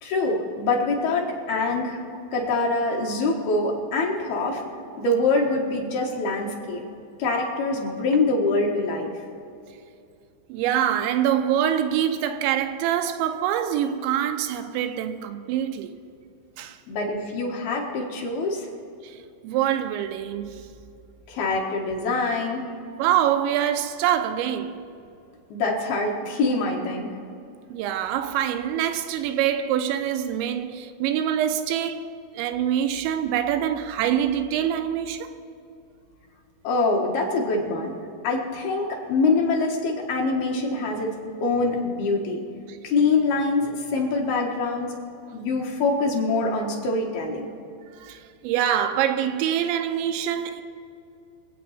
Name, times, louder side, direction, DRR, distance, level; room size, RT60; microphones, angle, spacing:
voice 1, 0.0-2.0 2.3-4.6 5.0-6.8 7.2-9.1 16.9-18.7 21.3-22.7 25.5-27.1 36.6-37.9 38.2-41.1 41.4-42.4 42.8-45.0 45.3-47.5, left 3 dB, 65° left, 3.1 m, -24 dB
voice 2, 10.5-16.0 16.6-16.8 19.0-19.2 19.4-20.7 23.0-24.8 27.7-32.1 32.3-35.3 38.9-39.0 42.7-42.8 48.0-50.6, right 10 dB, 85° right, 3.0 m, -25 dB
25.5 x 8.5 x 4.3 m
omnidirectional pair, 5.2 m